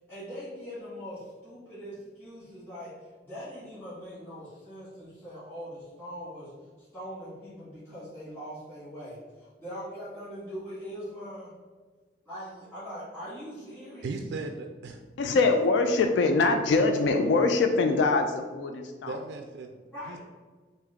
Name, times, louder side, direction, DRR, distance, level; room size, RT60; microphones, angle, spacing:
voice 1, 0.1-2.9 3.2-6.5 6.8-11.5 12.2-14.1 19.9-20.2, equal, 10° left, -14 dB, 1.5 m, -41 dB
voice 2, 14.0-15.0 19.1-19.8 20.1-20.2, right 3 dB, 80° right, 4 dB, 0.3 m, -36 dB
voice 3, 15.2-19.2, left 3 dB, 80° left, 5 dB, 0.3 m, -23 dB
3.6 x 2.7 x 3.4 m, 1.4 s
head